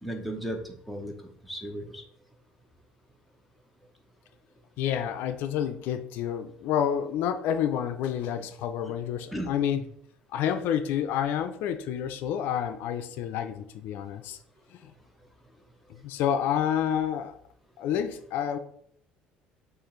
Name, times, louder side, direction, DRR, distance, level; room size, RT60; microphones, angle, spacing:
voice 1, 0.0-1.1 1.4-2.0 9.3-9.5 9.7-9.8 15.9-16.0, right 1 dB, ahead, 2 dB, 0.7 m, -35 dB
voice 2, 4.8-9.8 10.3-14.4 14.7-14.9 15.9-17.4 17.8-18.6, left 9 dB, 70° left, 8 dB, 0.4 m, -29 dB
6.5 x 2.5 x 3.1 m, 0.66 s
cardioid pair, 120°, 4 cm